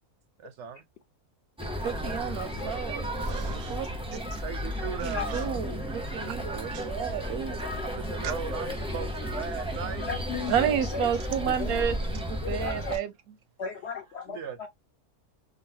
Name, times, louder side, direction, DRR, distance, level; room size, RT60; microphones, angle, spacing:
voice 1, 0.4-0.8 4.4-5.5 7.8-10.1 14.3-14.7, right 7 dB, 65° right, 0.8 m, -37 dB
sound 1, 1.6-13.0, equal, 5° right, 0.5 m, -33 dB
voice 2, 1.8-4.4 5.0-7.6 10.5-13.1, right 8 dB, 85° right, 1.1 m, -31 dB
voice 3, 10.0-11.1 11.5-11.9 12.4-13.0 13.6-14.7, left 6 dB, 65° left, 0.7 m, -36 dB
3.8 x 2.2 x 2.7 m
omnidirectional pair, 1.5 m